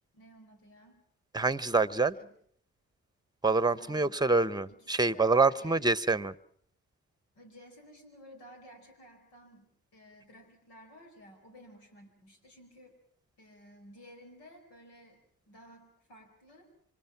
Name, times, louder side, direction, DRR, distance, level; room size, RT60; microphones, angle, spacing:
voice 1, 0.1-1.0 2.1-2.4 3.6-4.3 4.7-5.8 7.3-12.9 13.4-16.7, equal, 80° left, 4.8 m, -55 dB
voice 2, 1.3-2.2 3.4-6.3, right 3 dB, 10° right, 1.0 m, -26 dB
26.5 x 24.0 x 6.0 m
hypercardioid pair, 45°, 40 cm